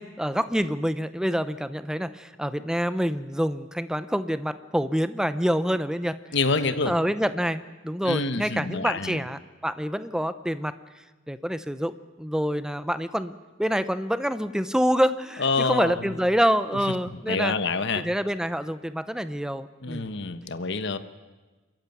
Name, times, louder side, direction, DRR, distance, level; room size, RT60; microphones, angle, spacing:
voice 1, 0.0-6.2 6.8-10.7 11.3-17.5 17.9-20.1, equal, 5° right, 13 dB, 0.7 m, -27 dB
voice 2, 6.3-6.9 8.0-9.2 15.4-16.1 16.7-16.8 17.1-18.1 19.8-21.0, left 4 dB, 60° left, 11 dB, 1.2 m, -27 dB
26.5 x 14.5 x 9.3 m, 1.2 s
head